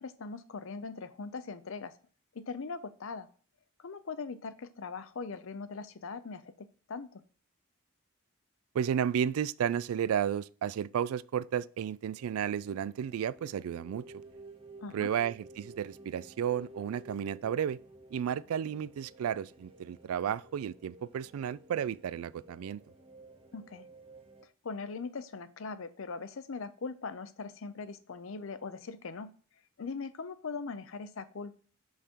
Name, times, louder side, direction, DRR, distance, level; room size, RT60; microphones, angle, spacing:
voice 1, 0.0-1.9 2.3-3.3 3.8-7.2 14.8-15.1 23.5-23.8 24.6-29.3 29.8-31.6, left 4 dB, 70° left, 0.6 m, -40 dB
voice 2, 8.7-14.1 14.9-17.8 18.1-22.8, right 8 dB, 85° right, 0.3 m, -33 dB
sound 1, 12.2-24.4, right 1 dB, 25° right, 0.7 m, -53 dB
5.5 x 4.9 x 4.4 m
head